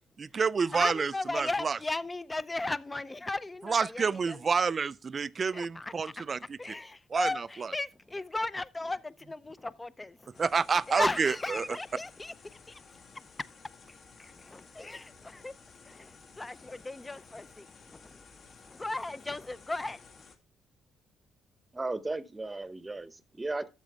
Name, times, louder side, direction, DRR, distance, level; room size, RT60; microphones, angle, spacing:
voice 1, 0.2-1.8 3.6-6.6 7.1-7.7 10.4-11.8, right 5 dB, 40° right, 0.4 m, -29 dB
voice 2, 0.7-4.4 5.5-5.9 6.6-10.2 10.9-12.3 12.7-12.8 14.2-15.5 15.9-18.2 18.7-20.0, left 2 dB, 20° left, 0.6 m, -36 dB
sound 1, 10.3-20.4, left 4 dB, 55° left, 2.2 m, -55 dB
voice 3, 21.7-23.7, right 2 dB, 20° right, 0.9 m, -35 dB
12.5 x 7.4 x 3.4 m
cardioid pair, 90°, 0 cm